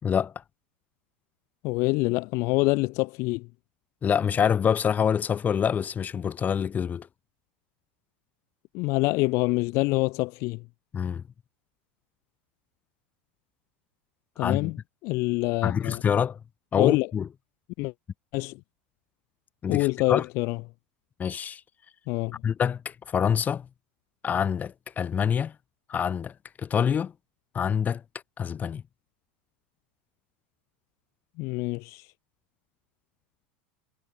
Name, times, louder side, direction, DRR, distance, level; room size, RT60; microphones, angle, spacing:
voice 1, 0.0-0.3 4.0-7.1 10.9-11.2 14.4-14.7 15.6-16.4 16.7-17.3 19.6-20.2 21.2-21.6 22.4-23.7 24.2-25.5 25.9-27.1 27.5-28.0 28.4-28.8, left 7 dB, 30° left, 2.6 m, -26 dB
voice 2, 1.6-3.5 8.7-10.6 14.4-14.8 15.0-16.0 16.8-17.1 17.8-17.9 18.3-18.6 19.7-20.6 22.1-22.4 31.4-32.1, left 25 dB, 60° left, 1.4 m, -26 dB
hypercardioid pair, 95°, 6 cm